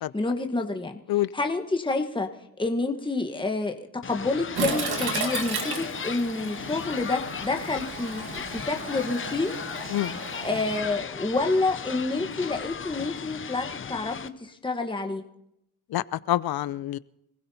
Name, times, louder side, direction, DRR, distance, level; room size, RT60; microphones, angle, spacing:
voice 1, 0.1-1.0 1.3-2.3 2.6-3.7 4.1-9.5 10.0-15.2, left 3 dB, 15° left, 4 dB, 1.3 m, -28 dB
sound 1, 4.0-14.3, left 7 dB, 35° left, 0.7 m, -36 dB
Toilet flush, 4.5-10.8, right 5 dB, 80° right, 1.8 m, -34 dB
voice 2, 15.9-17.0, left 14 dB, 70° left, 19 dB, 0.6 m, -26 dB
26.0 x 16.0 x 2.8 m, 0.82 s
cardioid pair, 75°, 38 cm